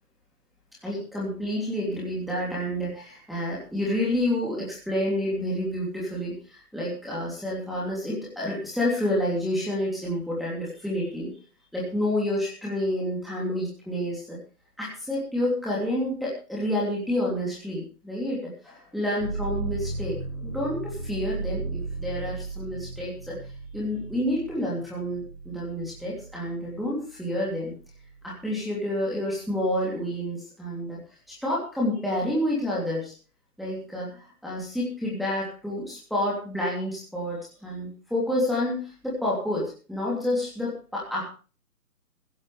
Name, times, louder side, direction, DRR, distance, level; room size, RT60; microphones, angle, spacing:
voice 1, 0.8-11.3 11.7-14.4 14.8-20.2 20.4-23.4 23.7-27.7 28.2-31.0 31.3-33.1 33.6-41.2, left 1 dB, ahead, -7 dB, 3.0 m, -29 dB
sound 1, 19.2-27.0 27.5-28.3, right 3 dB, 75° right, 6.8 m, -35 dB
16.0 x 14.5 x 3.4 m, 0.36 s
figure-of-eight pair, 160°, 46 cm